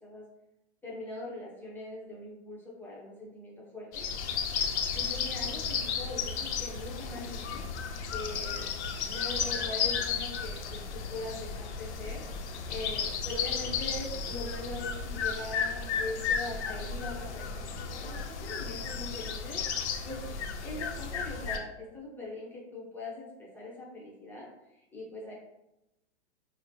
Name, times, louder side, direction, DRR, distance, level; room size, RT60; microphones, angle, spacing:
voice 1, 0.8-4.0 4.9-7.6 8.1-8.7 9.1-12.2 12.7-19.6 20.0-25.3, left 2 dB, 5° left, -5 dB, 0.8 m, -41 dB
sound 1, 3.9-21.6, left 6 dB, 75° left, 0.7 m, -34 dB
4.9 x 2.1 x 2.7 m, 0.89 s
hypercardioid pair, 135°, 34 cm